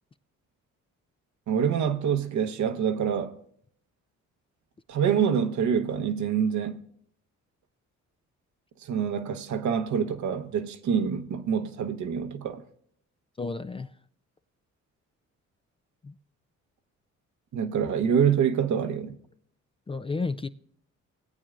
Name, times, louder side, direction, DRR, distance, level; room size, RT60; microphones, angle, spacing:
voice 1, 1.5-3.4 4.9-6.8 8.8-12.6 17.5-19.2, right 7 dB, 70° right, 1.0 m, -26 dB
voice 2, 13.4-13.9 16.0-16.1 19.9-20.5, left 3 dB, 20° left, 0.4 m, -31 dB
19.0 x 8.7 x 2.5 m
cardioid pair, 90°, 30 cm